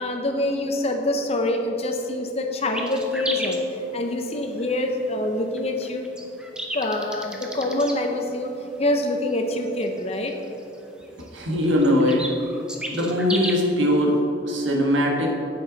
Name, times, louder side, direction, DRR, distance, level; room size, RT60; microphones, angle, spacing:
voice 1, 0.0-3.6 3.9-6.0 6.7-8.5 8.8-10.3, left 1 dB, 35° left, 4 dB, 0.8 m, -25 dB
sound 1, 2.7-14.2, equal, 5° right, 0.6 m, -35 dB
voice 2, 11.3-12.2 12.9-14.2 14.4-15.3, equal, 90° right, -1 dB, 1.6 m, -21 dB
10.0 x 7.7 x 4.0 m, 3.0 s
head